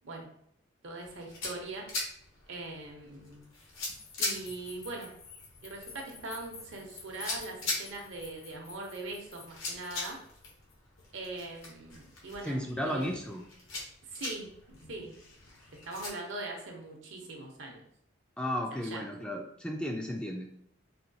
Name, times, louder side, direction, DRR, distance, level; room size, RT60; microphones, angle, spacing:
voice 1, 0.8-1.9 2.5-3.5 4.2-5.1 5.6-10.2 11.1-13.1 14.0-15.1 15.7-17.8 18.7-19.1, right 2 dB, 70° right, 1 dB, 0.8 m, -41 dB
sound 1, 1.0-16.1, left 2 dB, 80° left, 1.0 m, -42 dB
sound 2, 3.8-10.7, left 5 dB, 50° left, 0.7 m, -51 dB
voice 2, 12.4-13.4 18.4-20.5, equal, 5° left, 1 dB, 0.3 m, -34 dB
4.2 x 2.2 x 2.7 m, 0.70 s
head